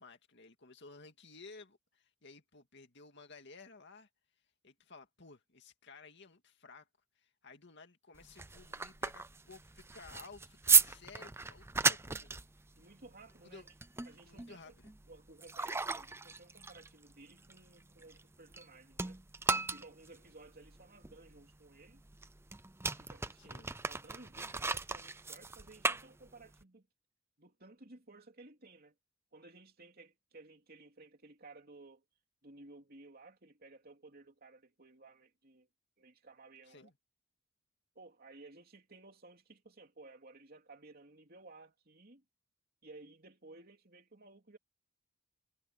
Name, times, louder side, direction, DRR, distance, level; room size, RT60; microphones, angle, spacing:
voice 1, 0.0-4.1 4.6-6.9 7.2-12.3 13.4-13.6 14.3-14.9 23.4-23.7 36.7-36.9, left 4 dB, 55° left, 2.2 m, -55 dB
sound 1, 8.2-18.7 18.9-26.6, right 4 dB, 10° right, 0.6 m, -35 dB
voice 2, 12.7-13.6 14.0-14.7 15.1-19.2 19.5-22.0 22.8-26.9 27.4-28.9 29.3-32.0 32.4-35.7 36.0-36.9 37.9-42.2 42.8-44.6, right 2 dB, 45° right, 3.0 m, -56 dB
head